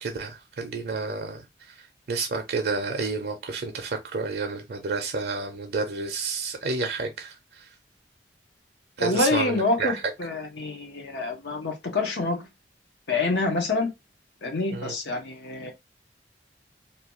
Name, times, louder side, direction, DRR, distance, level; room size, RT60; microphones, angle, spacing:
voice 1, 0.0-1.4 1.8-7.7 9.0-10.0 14.7-14.9, right 4 dB, 60° right, 0.5 m, -30 dB
voice 2, 9.0-12.5 13.1-13.9 14.4-15.7, left 3 dB, 80° left, 0.8 m, -27 dB
2.7 x 2.2 x 2.8 m
head